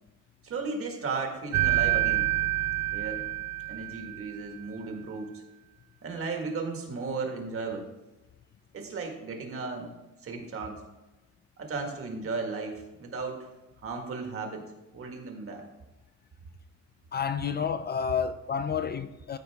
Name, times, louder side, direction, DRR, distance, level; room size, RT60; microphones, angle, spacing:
voice 1, 0.4-2.3 2.9-3.2 3.7-5.4 6.0-7.9 8.7-9.9 10.2-10.8 11.6-13.5 13.8-14.6 14.9-15.7, right 4 dB, 50° right, 1.7 m, -35 dB
sound 1, 1.5-4.4, right 14 dB, 65° right, 0.8 m, -27 dB
voice 2, 17.1-19.4, left 7 dB, 35° left, 0.4 m, -30 dB
14.0 x 4.7 x 3.5 m
cardioid pair, 130°, 30 cm